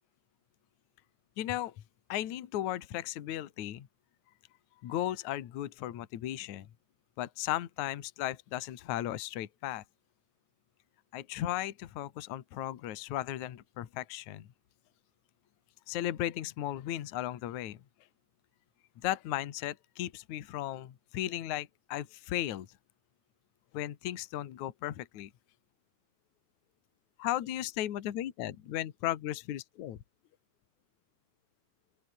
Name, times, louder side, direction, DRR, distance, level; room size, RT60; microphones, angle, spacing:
voice 1, 1.4-1.7 2.1-3.9 4.8-6.7 7.2-9.8 11.1-14.5 15.9-17.8 19.0-22.7 23.7-25.3 27.2-30.0, left 13 dB, 55° left, 2.3 m, -36 dB
open air
omnidirectional pair, 5.0 m